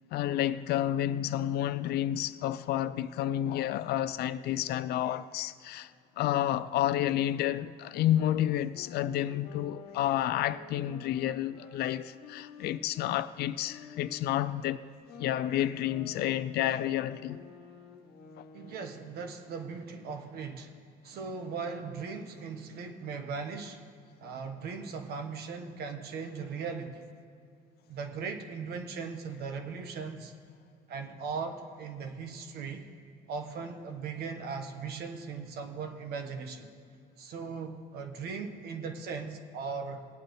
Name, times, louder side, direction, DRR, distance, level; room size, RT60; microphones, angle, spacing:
voice 1, 0.1-14.8 15.2-17.4, left 12 dB, 70° left, 0.4 m, -30 dB
sound 1, 7.9-13.2 13.7-19.3, left 6 dB, 90° left, 1.2 m, -50 dB
voice 2, 18.5-20.7 21.0-23.8 24.2-27.0 27.9-30.3 30.9-32.8 33.3-36.7 37.2-40.0, right 5 dB, 70° right, 1.3 m, -38 dB
19.5 x 9.0 x 3.2 m
cardioid pair, 110°, 17 cm